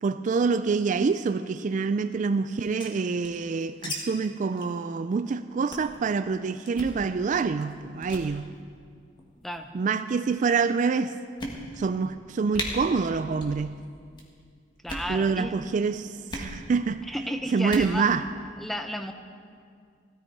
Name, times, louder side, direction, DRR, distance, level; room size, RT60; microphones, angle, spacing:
voice 1, 0.0-8.5 9.7-11.2 11.7-13.8 15.1-17.0 17.5-18.3, right 5 dB, 45° right, 11 dB, 0.3 m, -26 dB
sound 1, 2.5-4.0 4.2-4.3 4.6-4.8 5.1-5.3 5.7-6.0 6.7-7.0 7.6-7.8 8.0-8.3 9.2-9.6 10.3-10.4 10.9-11.0 11.4-11.9 12.2-12.3 12.5-12.7 13.3-13.6 13.9-14.3 14.8-15.1 16.3-16.5 17.6-17.9, left 1 dB, 25° left, 1.7 m, -37 dB
voice 2, 14.8-15.5 17.1-18.1 18.6-19.1, equal, ahead, 6 dB, 0.7 m, -33 dB
16.5 x 13.5 x 4.6 m, 2.2 s
head